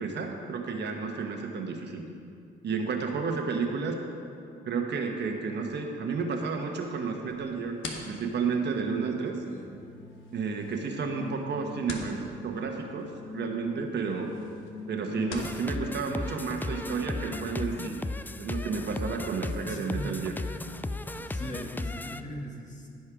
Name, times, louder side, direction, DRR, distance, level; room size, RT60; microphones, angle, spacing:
voice 1, 0.0-2.0 2.6-4.0 4.6-9.4 10.3-14.3 14.9-18.0 18.4-20.3 21.1-21.3, right 5 dB, 60° right, 2 dB, 1.3 m, -31 dB
sound 1, 7.3-15.6, left 3 dB, 85° left, 1.3 m, -46 dB
sound 2, 9.7-18.3, left 3 dB, 60° left, 1.3 m, -44 dB
sound 3, 15.4-22.2, left 2 dB, 10° left, 0.3 m, -36 dB
voice 2, 19.7-20.2 21.3-22.9, equal, 40° left, -1 dB, 1.9 m, -39 dB
15.0 x 5.4 x 5.0 m, 2.4 s
cardioid pair, 90°, 20 cm